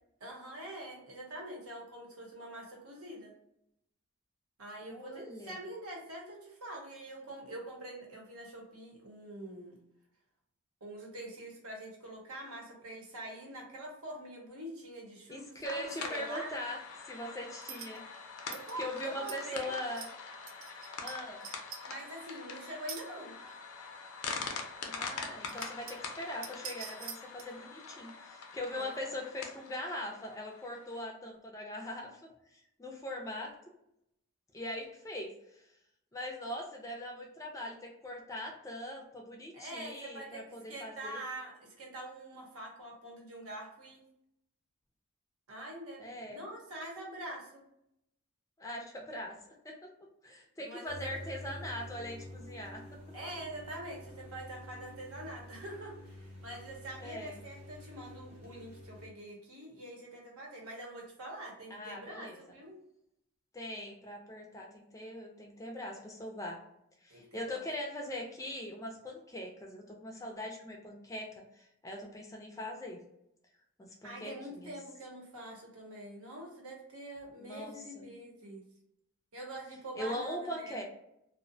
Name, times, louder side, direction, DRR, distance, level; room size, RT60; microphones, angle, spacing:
voice 1, 0.2-3.3 4.6-9.7 10.8-16.5 18.5-19.7 21.9-23.3 28.8-28.9 39.5-44.0 45.5-47.6 50.6-51.1 53.1-62.8 67.1-67.6 74.0-78.6 79.3-80.8, right 1 dB, 85° right, -1 dB, 0.9 m, -45 dB
voice 2, 4.8-5.6 15.3-16.8 17.1-18.0 18.8-20.1 21.0-21.5 24.8-32.3 32.8-33.5 34.5-35.6 36.1-41.2 46.0-46.4 48.6-49.4 49.6-49.9 50.2-52.8 57.0-57.4 61.7-62.4 63.5-66.6 67.0-73.0 73.8-74.7 77.4-78.0 80.0-80.8, left 1 dB, 15° left, 1 dB, 0.3 m, -41 dB
sound 1, 15.6-31.0, left 5 dB, 85° left, 0.4 m, -44 dB
sound 2, 17.6-18.0 18.5-18.8 19.2-19.4 19.9-20.1 20.5-21.2 21.4-21.8 22.9-23.0 23.5-23.6 24.8-24.9 25.3-26.1 26.4-27.5, right 7 dB, 70° right, 0.4 m, -44 dB
sound 3, 50.9-59.1, left 1 dB, 30° right, 0.7 m, -49 dB
2.4 x 2.0 x 2.6 m, 0.78 s
head